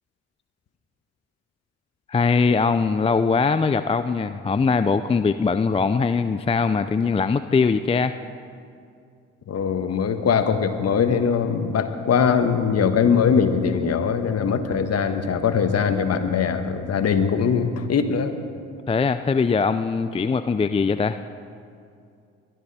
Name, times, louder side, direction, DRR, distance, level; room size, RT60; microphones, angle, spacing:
voice 1, 2.1-8.2 18.9-21.2, left 4 dB, 20° left, 11 dB, 0.5 m, -21 dB
voice 2, 9.5-18.3, left 6 dB, 50° left, 8 dB, 1.4 m, -21 dB
21.5 x 12.5 x 4.3 m, 2.4 s
hypercardioid pair, 60°, 33 cm